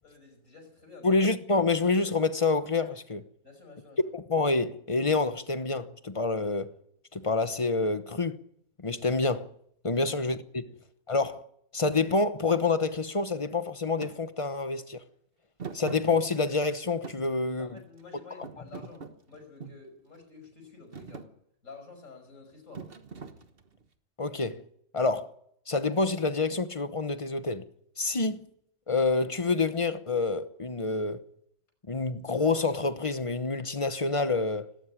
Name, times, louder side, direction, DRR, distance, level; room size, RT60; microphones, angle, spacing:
voice 1, 0.0-1.2 3.4-4.1 9.9-10.2 10.6-10.8 17.6-21.3 21.6-22.9, left 4 dB, 45° left, 6.2 m, -50 dB
voice 2, 1.0-3.2 4.1-6.7 7.1-8.4 8.8-9.5 9.8-10.6 11.1-11.4 11.7-15.0 15.7-17.8 24.2-24.6 24.9-25.3 25.7-27.6 28.0-28.5 28.9-31.2 31.9-34.7, left 3 dB, 25° left, 0.8 m, -27 dB
Thump thud, 14.0-14.2 15.6-16.7 17.0-18.0 18.4-19.9 20.4-20.7 20.9-21.3 22.7-23.8, right 5 dB, 35° right, 1.4 m, -43 dB
18.5 x 18.0 x 9.6 m
omnidirectional pair, 1.8 m